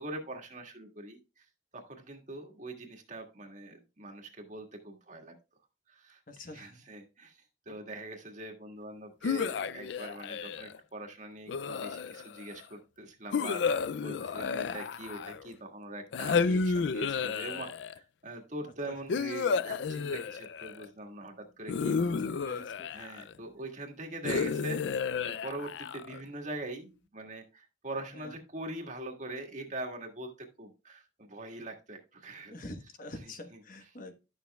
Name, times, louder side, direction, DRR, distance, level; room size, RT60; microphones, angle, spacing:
voice 1, 0.0-1.4 1.7-5.3 5.9-7.3 7.6-22.6 22.9-24.8 25.4-30.3 30.6-32.5, right 2 dB, 40° right, 3 dB, 1.6 m, -43 dB
voice 2, 6.3-6.8 14.4-14.8 18.9-19.0 22.0-22.9 28.1-28.3 32.5-34.1, left 1 dB, 45° left, 7 dB, 1.2 m, -46 dB
sound 1, 9.2-10.8 11.5-12.4 13.3-15.5 16.1-18.0 19.1-20.9 21.7-23.3 24.2-26.2, left 5 dB, 65° left, 0.4 m, -32 dB
11.5 x 6.7 x 2.3 m, 0.28 s
head